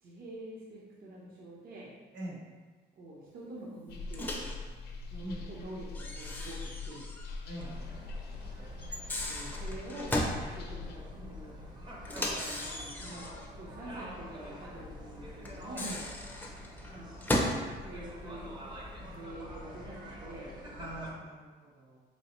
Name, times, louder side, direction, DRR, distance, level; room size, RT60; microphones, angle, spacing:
voice 1, 0.0-1.9 3.0-4.7 5.1-7.1 9.2-10.2 10.4-11.6 12.1-15.8 16.9-17.6 17.8-18.5 19.0-20.5, right 1 dB, 55° right, -6 dB, 0.8 m, -46 dB
sound 1, 3.9-11.0, left 3 dB, 65° left, 0.6 m, -43 dB
Microwave oven, 4.1-4.6 5.9-7.3 7.6-7.7 8.8-10.4 12.0-13.5 15.5-17.6, left 1 dB, 10° left, 0.5 m, -35 dB
voice 2, 7.4-7.8 8.5-8.7 15.7-16.1 20.8-22.0, right 1 dB, 85° right, -5 dB, 1.2 m, -43 dB
sound 2, 7.6-21.1, equal, 25° right, 0.7 m, -46 dB
4.6 x 3.1 x 3.0 m, 1.4 s
cardioid pair, 135°, 18 cm